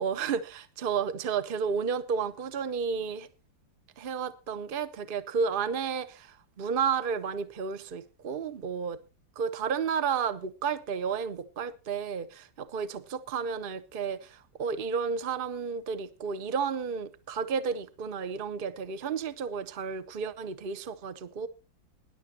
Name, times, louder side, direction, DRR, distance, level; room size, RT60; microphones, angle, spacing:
voice 1, 0.0-3.3 4.0-9.0 9.4-21.5, right 6 dB, 35° right, 0.9 m, -32 dB
20.0 x 11.0 x 2.9 m
omnidirectional pair, 2.0 m